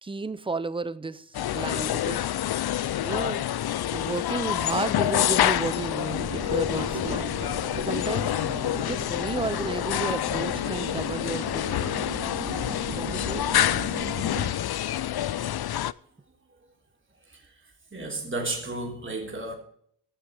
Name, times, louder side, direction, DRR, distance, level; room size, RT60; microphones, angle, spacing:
voice 1, 0.0-2.4 3.0-3.4 3.9-7.3 7.8-8.3 8.8-12.1 13.0-13.6, right 3 dB, 10° right, 0.6 m, -33 dB
sound 1, 1.3-15.9, left 12 dB, 60° left, 0.5 m, -27 dB
sound 2, 6.1-14.5, right 2 dB, 45° right, 4.4 m, -37 dB
voice 2, 17.9-19.5, right 2 dB, 30° right, 3.4 m, -33 dB
18.0 x 6.8 x 4.7 m
wide cardioid pair, 120°, 43 cm